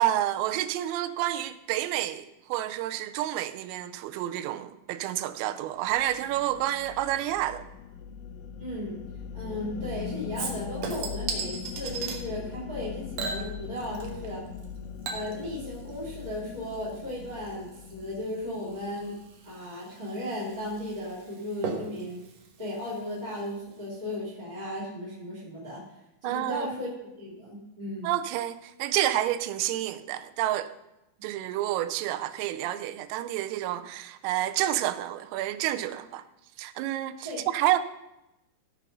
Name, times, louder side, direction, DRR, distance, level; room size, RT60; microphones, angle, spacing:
voice 1, 0.0-7.7 26.2-26.7 28.0-30.7 31.2-36.2 36.6-37.3 37.5-37.8, right 13 dB, 90° right, 3.3 m, -29 dB
sound 1, 5.9-19.4, left 7 dB, 85° left, 3.2 m, -41 dB
voice 2, 8.6-9.0 9.3-14.4 15.1-19.2 19.4-22.2 22.6-25.8 26.2-26.9 27.2-28.1 37.2-37.4, left 1 dB, 15° right, 1.6 m, -36 dB
Chink clink / Liquid, 10.4-12.2 13.2-14.3 14.6-23.6 23.9-24.0, right 5 dB, 65° right, 2.2 m, -39 dB
16.0 x 5.7 x 5.4 m
omnidirectional pair, 5.8 m